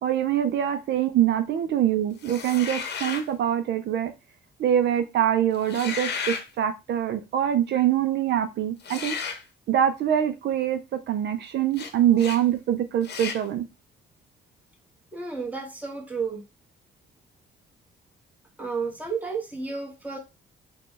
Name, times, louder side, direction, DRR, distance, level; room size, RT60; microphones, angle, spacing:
voice 1, 0.0-4.1 4.6-9.2 9.7-13.7, right 10 dB, 60° right, 0.4 m, -24 dB
sound 1, 2.2-3.3 5.6-6.5 8.8-9.4 11.7-11.9 12.2-12.4 13.0-13.4, left 6 dB, 60° left, 0.8 m, -33 dB
voice 2, 15.1-16.4 18.6-20.2, right 4 dB, 5° right, 1.1 m, -32 dB
4.0 x 2.2 x 3.2 m
cardioid pair, 90°, 20 cm